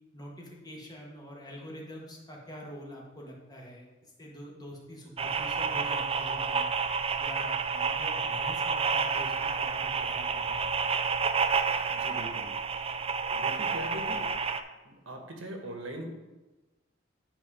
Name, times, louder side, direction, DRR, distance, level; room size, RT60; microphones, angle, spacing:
voice 1, 0.1-3.9 4.2-6.7 7.2-10.7, equal, 20° left, -2 dB, 1.7 m, -45 dB
sound 1, 5.2-14.6, right 5 dB, 30° right, 0.4 m, -30 dB
voice 2, 11.9-12.5 13.3-14.3 14.8-16.1, right 1 dB, 80° right, 3 dB, 1.4 m, -41 dB
9.8 x 4.5 x 4.9 m, 1.1 s
head